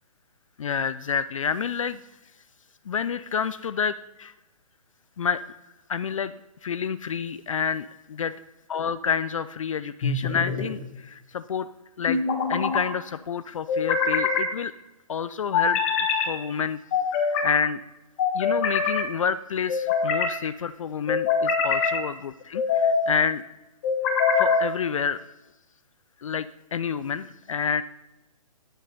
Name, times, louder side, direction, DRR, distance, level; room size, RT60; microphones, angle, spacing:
voice 1, 0.6-2.0 2.9-4.3 5.2-5.4 5.9-6.3 6.6-8.3 8.7-11.7 12.0-12.2 12.5-14.7 15.1-15.8 16.3-16.8 17.1-17.8 18.3-23.4 24.3-25.2 26.2-27.8, left 7 dB, 60° left, 14 dB, 0.4 m, -28 dB
sound 1, 10.0-10.7 12.1-12.8 13.7-14.5 15.5-16.3 16.9-17.5 18.2-19.0 19.7-20.3 21.1-22.0 22.6-23.1 23.8-24.6, left 5 dB, 20° left, 1.6 m, -24 dB
10.5 x 7.3 x 5.3 m, 0.98 s
hypercardioid pair, 175°, 19 cm